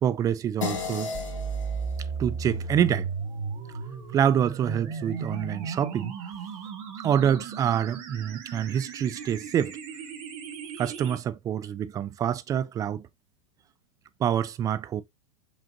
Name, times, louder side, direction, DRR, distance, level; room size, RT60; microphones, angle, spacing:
voice 1, 0.0-1.1 2.2-3.1 4.1-6.3 7.0-9.8 10.8-13.1 14.2-15.0, right 9 dB, 20° right, 0.3 m, -26 dB
sound 1, 0.6-5.3, left 5 dB, 80° left, 1.3 m, -38 dB
sound 2, 1.1-11.2, right 5 dB, 45° right, 1.2 m, -35 dB
5.1 x 2.5 x 2.6 m
hypercardioid pair, 105°, 16 cm